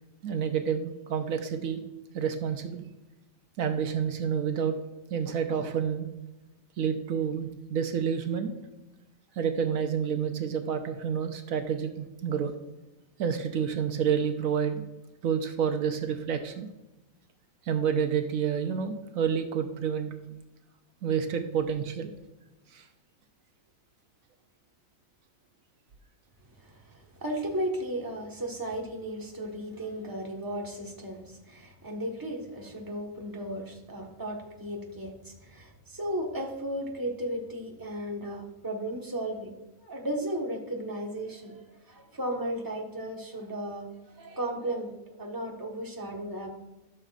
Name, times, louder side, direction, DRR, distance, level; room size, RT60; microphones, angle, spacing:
voice 1, 0.2-1.9 2.1-2.9 3.6-4.8 5.1-6.1 6.8-8.5 9.4-12.5 13.2-14.8 15.2-16.7 17.7-20.1 21.0-22.1 22.7-22.9, right 7 dB, 75° right, 7 dB, 1.1 m, -29 dB
voice 2, 26.6-39.5 39.8-46.5, right 1 dB, 15° right, 0 dB, 1.3 m, -35 dB
13.0 x 6.7 x 2.4 m, 1.0 s
omnidirectional pair, 1.4 m